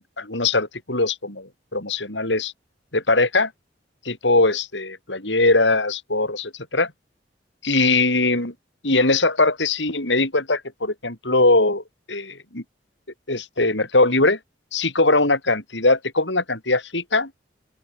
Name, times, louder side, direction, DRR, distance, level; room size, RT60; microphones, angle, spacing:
voice 1, 0.2-2.5 2.9-3.5 4.0-6.9 7.6-8.5 8.8-12.6 13.3-14.4 14.7-17.3, left 2 dB, 80° left, 7.4 m, -21 dB
open air
head